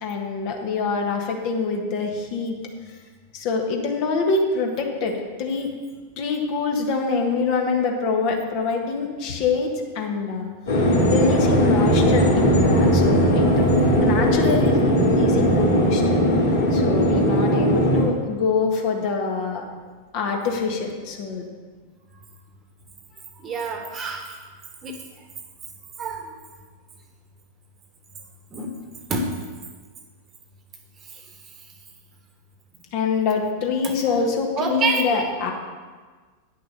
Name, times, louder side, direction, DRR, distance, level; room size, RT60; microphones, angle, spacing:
voice 1, 0.0-2.6 3.3-5.7 6.2-9.7 9.9-10.6 11.1-13.6 14.0-16.2 16.7-19.6 20.1-21.4 32.9-35.5, left 4 dB, 45° left, 2 dB, 1.6 m, -25 dB
sound 1, 10.7-18.0, equal, 70° left, 3.0 m, -18 dB
voice 2, 23.4-24.4 24.8-24.9 26.0-26.3 28.5-28.7 29.1-29.3 33.8-33.9 34.6-35.5, right 3 dB, 25° right, 4 dB, 1.4 m, -27 dB
9.8 x 6.7 x 6.6 m, 1.5 s
figure-of-eight pair, 90°, 0 cm